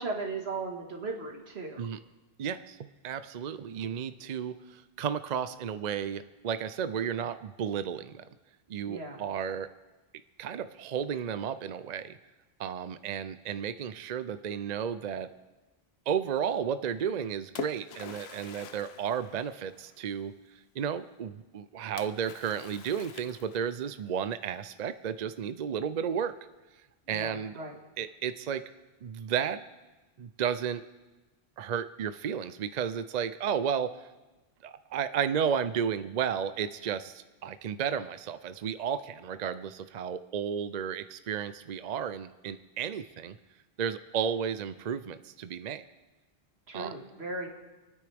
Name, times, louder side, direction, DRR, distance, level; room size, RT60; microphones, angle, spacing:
voice 1, 0.0-1.8 8.9-9.2 27.1-27.8 46.7-47.5, right 3 dB, 80° right, 1 dB, 2.0 m, -37 dB
voice 2, 2.4-2.8 3.0-8.2 8.7-9.7 10.4-12.2 12.6-15.3 16.1-20.3 20.8-26.3 27.1-27.6 28.0-28.6 29.0-29.6 30.2-30.8 31.6-33.9 34.6-43.4 43.8-45.8 46.7-46.9, right 8 dB, 50° right, 12 dB, 0.6 m, -33 dB
Splash splatter, 17.0-20.2 22.0-23.9, left 8 dB, 80° left, 0.9 m, -45 dB
27.5 x 9.7 x 3.5 m, 1.2 s
omnidirectional pair, 1.1 m